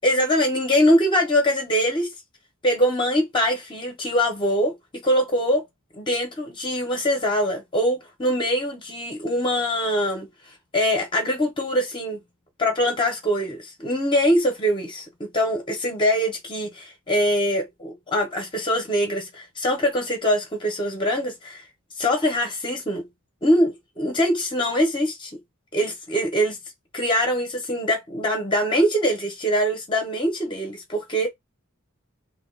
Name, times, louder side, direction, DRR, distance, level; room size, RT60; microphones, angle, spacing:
voice 1, 0.0-2.1 2.6-4.7 5.0-5.6 5.9-10.3 10.7-12.2 12.6-21.7 22.0-23.0 23.4-25.3 25.7-26.6 26.9-31.3, equal, 20° left, 0.8 m, -23 dB
2.4 x 2.1 x 3.7 m
head